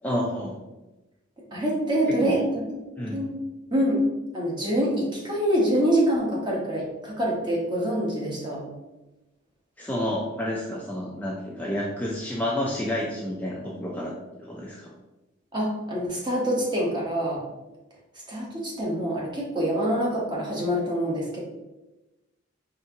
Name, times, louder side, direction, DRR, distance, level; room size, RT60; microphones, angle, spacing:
voice 1, 0.0-0.5 2.2-2.4 3.0-3.2 9.8-14.9, left 1 dB, 10° left, -4 dB, 0.4 m, -30 dB
voice 2, 1.5-2.4 2.7-2.8 3.1-3.3 3.7-4.1 4.3-8.7 15.5-17.4 18.3-21.4, equal, 25° right, -4 dB, 1.0 m, -25 dB
4.3 x 3.5 x 2.8 m, 1.1 s
head